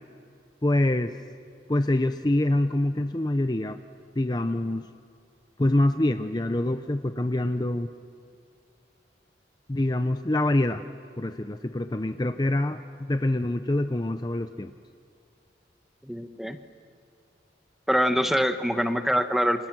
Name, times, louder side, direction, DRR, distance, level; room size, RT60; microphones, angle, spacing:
voice 1, 0.6-1.2 1.7-3.8 4.2-4.9 5.6-7.9 9.7-10.8 11.2-14.7, left 1 dB, 20° left, 8 dB, 0.6 m, -25 dB
voice 2, 16.0-16.6 17.9-19.7, equal, ahead, 8 dB, 1.0 m, -24 dB
29.0 x 28.0 x 6.1 m, 2.4 s
head